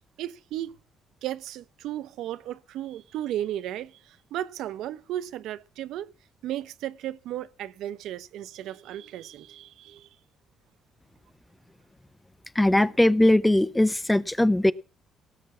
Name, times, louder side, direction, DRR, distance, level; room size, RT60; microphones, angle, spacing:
voice 1, 0.2-0.8 1.2-6.1 6.4-10.1, right 12 dB, 80° right, 0.9 m, -35 dB
voice 2, 12.6-14.7, left 1 dB, 5° left, 0.6 m, -20 dB
18.0 x 8.2 x 5.8 m
cardioid pair, 125°, 0 cm